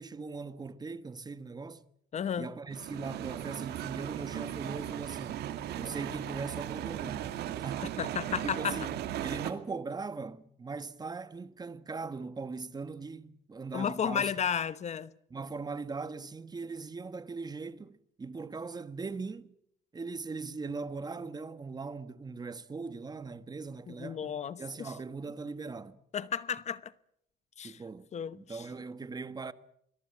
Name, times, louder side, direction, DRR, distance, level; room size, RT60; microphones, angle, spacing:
voice 1, 0.0-1.8 2.4-5.4 5.8-7.3 7.6-7.9 8.4-8.9 9.2-14.3 15.3-19.5 19.9-26.0 27.6-28.1 28.3-29.5, right 4 dB, 25° right, 1.4 m, -40 dB
voice 2, 2.1-2.5 8.0-8.8 13.7-15.1 23.9-24.9 26.1-26.9 27.6-27.8 28.1-28.7, left 8 dB, 40° left, 1.0 m, -33 dB
sound 1, 2.7-9.5, right 12 dB, 75° right, 2.3 m, -37 dB
27.0 x 21.5 x 7.2 m
cardioid pair, 110°, 17 cm